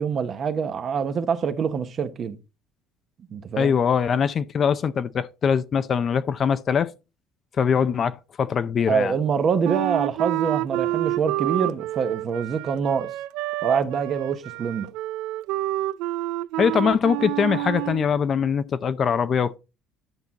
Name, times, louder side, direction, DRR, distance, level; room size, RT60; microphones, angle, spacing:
voice 1, 0.0-2.4 3.3-3.7 8.9-13.1 13.6-14.9, right 6 dB, 35° right, 0.9 m, -25 dB
voice 2, 3.6-6.9 7.6-9.1 16.6-19.6, left 7 dB, 30° left, 0.5 m, -22 dB
Wind instrument woodwind instrument, 9.6-18.1, right 17 dB, 80° right, 0.4 m, -28 dB
11.0 x 6.0 x 4.0 m
cardioid pair, 155°, 0 cm